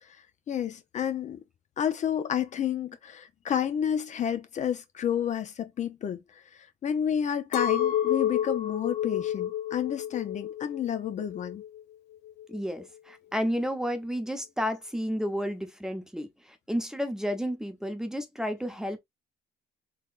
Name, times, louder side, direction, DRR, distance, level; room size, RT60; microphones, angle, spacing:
voice 1, 0.5-1.4 1.8-6.4 6.8-11.6, left 9 dB, 45° left, 0.6 m, -30 dB
Chink clink, 7.5-11.8 12.3-12.9, left 10 dB, 85° left, 0.6 m, -30 dB
voice 2, 12.5-19.0, equal, 5° right, 0.8 m, -31 dB
3.8 x 3.1 x 2.5 m
cardioid pair, 110°, 17 cm